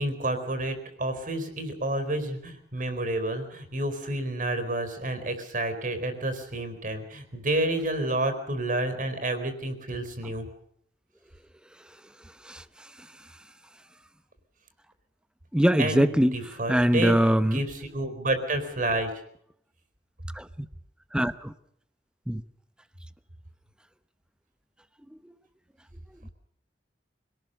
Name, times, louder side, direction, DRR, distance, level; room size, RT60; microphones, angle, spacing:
voice 1, 0.0-10.5 15.8-19.1, right 1 dB, 50° right, 9 dB, 4.2 m, -30 dB
voice 2, 15.5-16.3 16.7-17.6 20.4-20.5 21.1-21.5 22.3-22.4, equal, 5° right, 13 dB, 0.9 m, -22 dB
25.5 x 18.5 x 6.7 m, 0.70 s
head